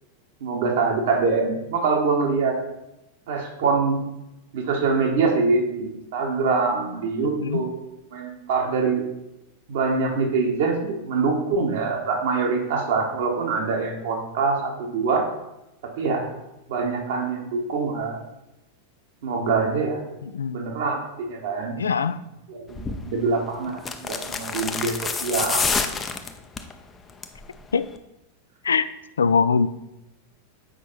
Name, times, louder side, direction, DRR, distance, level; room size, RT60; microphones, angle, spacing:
voice 1, 0.4-2.6 3.3-4.0 4.5-7.8 8.1-9.0 9.7-15.3 16.0-16.3 16.7-18.2 19.2-20.0 20.5-21.8 22.5-25.7, right 4 dB, 55° right, 1 dB, 1.5 m, -24 dB
voice 2, 20.2-20.7 21.8-22.2 27.7-27.9 28.6-28.9 29.2-29.7, left 5 dB, 70° left, 14 dB, 0.3 m, -22 dB
sound 1, 22.8-23.0 23.8-26.7 27.1-27.4 27.7-27.8, left 5 dB, 20° left, 0.6 m, -27 dB
7.8 x 5.3 x 4.2 m, 0.93 s
figure-of-eight pair, 90°, 0 cm